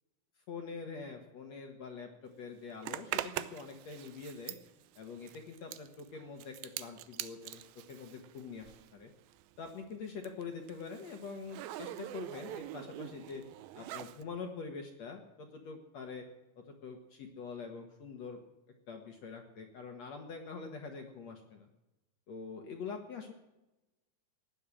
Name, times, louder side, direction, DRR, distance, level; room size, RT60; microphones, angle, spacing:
voice 1, 0.5-4.6 5.0-7.6 7.9-9.1 9.6-13.4 13.7-16.3 16.6-18.4 18.9-21.7 22.3-23.3, left 5 dB, 55° left, 3 dB, 2.0 m, -45 dB
Zipper (clothing), 2.8-9.0 9.3-14.2, right 14 dB, 80° right, 2.3 m, -44 dB
19.0 x 7.6 x 9.9 m, 0.98 s
omnidirectional pair, 4.5 m